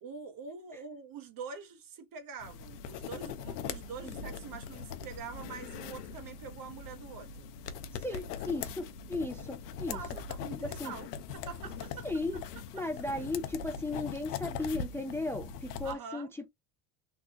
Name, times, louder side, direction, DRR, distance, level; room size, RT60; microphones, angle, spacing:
voice 1, 0.0-7.5 8.1-8.2 9.9-11.1 11.3-12.1 15.8-16.3, right 6 dB, 45° right, 1.2 m, -45 dB
sound 1, 2.4-15.9, left 6 dB, 85° left, 0.7 m, -41 dB
voice 2, 7.9-10.0 10.6-10.9 12.0-12.4 12.7-16.5, left 2 dB, 5° left, 0.5 m, -36 dB
3.5 x 2.3 x 2.8 m
supercardioid pair, 95°, 46 cm